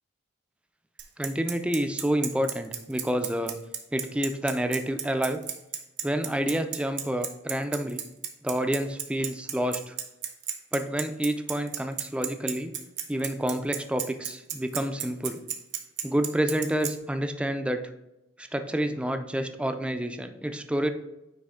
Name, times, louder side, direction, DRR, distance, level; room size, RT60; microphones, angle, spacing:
Bicycle, 1.0-16.9, right 10 dB, 70° right, 0.9 m, -33 dB
voice 1, 1.2-3.6 3.9-5.4 6.0-8.0 8.4-10.0 10.7-12.7 13.1-15.4 16.0-17.8 18.4-20.9, right 1 dB, 5° right, 7 dB, 0.4 m, -28 dB
9.4 x 3.2 x 3.6 m, 0.93 s
head